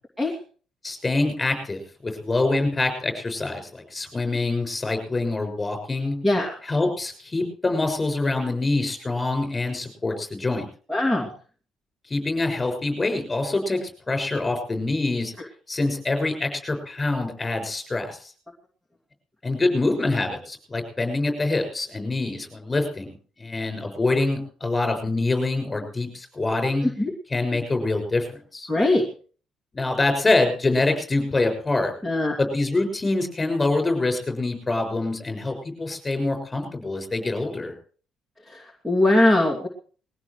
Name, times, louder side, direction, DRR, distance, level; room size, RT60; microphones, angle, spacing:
voice 1, 0.8-6.2 6.6-10.7 12.1-15.3 15.7-18.3 19.4-23.1 23.4-26.8 27.3-28.3 28.5-28.7 29.7-31.9 32.4-37.7, left 2 dB, 15° left, 6 dB, 6.3 m, -25 dB
voice 2, 6.2-6.6 10.9-11.3 27.0-27.1 28.7-29.0 32.0-32.4 38.5-39.7, left 1 dB, 5° right, 0 dB, 2.7 m, -21 dB
21.5 x 16.0 x 3.3 m, 0.41 s
cardioid pair, 150°, 0 cm